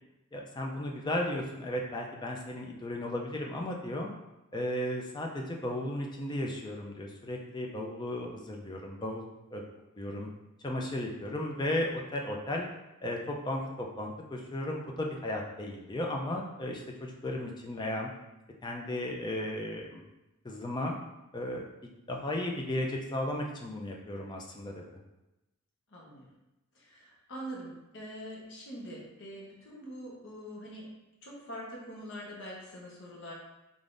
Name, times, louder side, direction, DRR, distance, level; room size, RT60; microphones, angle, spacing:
voice 1, 0.3-4.1 4.5-9.2 9.5-9.6 10.0-10.3 10.6-12.7 13.0-18.1 18.6-20.0 20.4-21.0 21.3-21.6 22.1-24.8, left 1 dB, 20° left, 1 dB, 0.4 m, -35 dB
voice 2, 25.9-26.2 26.7-30.9 31.2-33.3, equal, 60° left, -4 dB, 1.0 m, -44 dB
3.6 x 3.5 x 2.6 m, 0.97 s
head